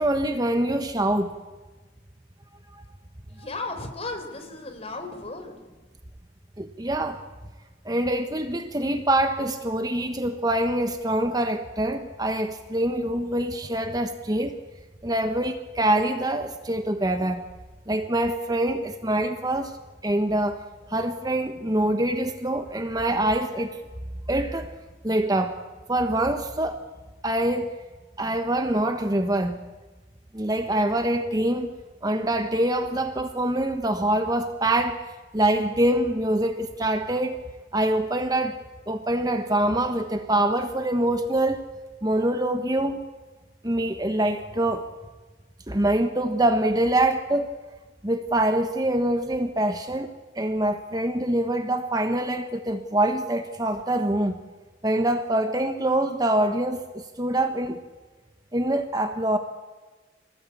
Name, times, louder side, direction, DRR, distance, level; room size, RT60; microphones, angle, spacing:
voice 1, 0.0-1.4 6.6-7.2 7.8-14.6 15.0-17.4 17.9-19.7 20.0-20.6 20.9-23.8 24.3-24.7 25.0-25.6 25.9-26.8 27.2-27.7 28.2-29.6 30.3-31.8 32.0-35.0 35.3-37.4 37.7-38.6 38.9-41.6 42.0-43.0 43.6-44.9 45.7-47.5 48.0-50.1 50.3-54.4 54.8-57.8 58.5-59.4, right 1 dB, 20° right, 7 dB, 1.2 m, -25 dB
voice 2, 3.3-5.5, left 2 dB, 35° left, 5 dB, 4.1 m, -35 dB
27.0 x 19.0 x 8.7 m, 1.3 s
head